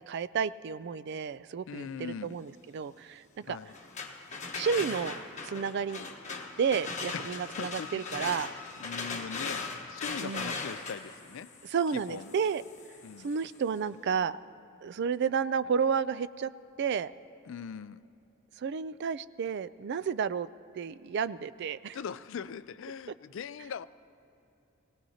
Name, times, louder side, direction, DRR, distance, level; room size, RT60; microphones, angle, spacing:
voice 1, 0.1-3.6 4.5-5.2 5.4-6.1 6.6-8.5 10.2-10.5 11.6-12.6 13.2-14.4 14.8-16.5 16.8-17.1 18.6-20.5 20.7-22.0, right 6 dB, 55° right, 15 dB, 0.3 m, -31 dB
voice 2, 1.7-2.4 3.5-3.7 7.1-8.3 8.8-11.5 12.1-12.3 13.0-13.3 17.5-18.0 21.9-23.9, left 6 dB, 65° left, 15 dB, 0.4 m, -41 dB
sound 1, 3.7-13.5, left 4 dB, 35° left, 1.2 m, -39 dB
23.0 x 17.5 x 2.8 m, 2.8 s
head